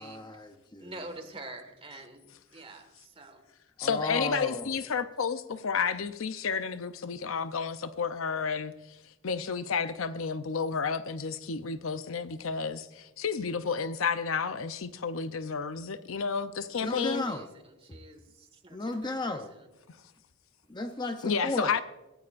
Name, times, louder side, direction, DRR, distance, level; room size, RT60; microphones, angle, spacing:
voice 1, 0.0-0.9 3.8-4.8 16.8-17.5 18.7-19.5 20.7-21.8, left 2 dB, 20° left, 0.7 m, -34 dB
voice 2, 0.8-3.4 16.8-19.7, right 2 dB, 25° right, 1.7 m, -47 dB
voice 3, 3.8-8.7 9.2-17.2 21.2-21.8, left 5 dB, 75° left, 0.7 m, -31 dB
22.0 x 15.5 x 2.5 m
head